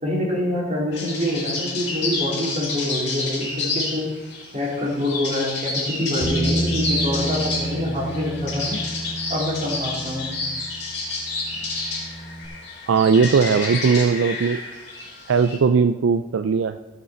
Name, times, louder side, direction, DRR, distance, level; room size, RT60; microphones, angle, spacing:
voice 1, 0.0-4.1 4.5-8.8 9.3-10.3, left 1 dB, 35° right, -4 dB, 3.3 m, -26 dB
sound 1, 0.9-15.6, left 3 dB, 60° left, 3.9 m, -29 dB
Bass guitar, 6.2-12.5, right 1 dB, 10° left, 2.6 m, -30 dB
voice 2, 12.9-14.6 15.3-16.8, right 5 dB, 75° right, 10 dB, 0.4 m, -18 dB
16.5 x 6.7 x 4.3 m, 1.2 s
head